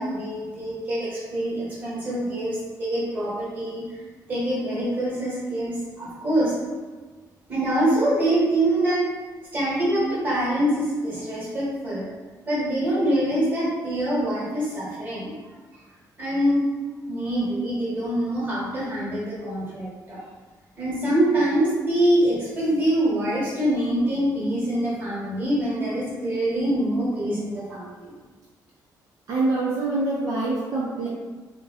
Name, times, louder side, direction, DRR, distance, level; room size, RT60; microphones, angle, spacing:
voice 1, 0.0-3.8 4.3-6.5 7.5-9.0 9.5-12.1 12.5-15.4 16.2-16.6 17.1-20.2 20.8-28.1, right 1 dB, 25° right, -8 dB, 1.2 m, -24 dB
voice 2, 29.3-31.1, right 2 dB, 50° right, -7 dB, 0.5 m, -25 dB
2.7 x 2.2 x 3.9 m, 1.3 s
cardioid pair, 165°, 7 cm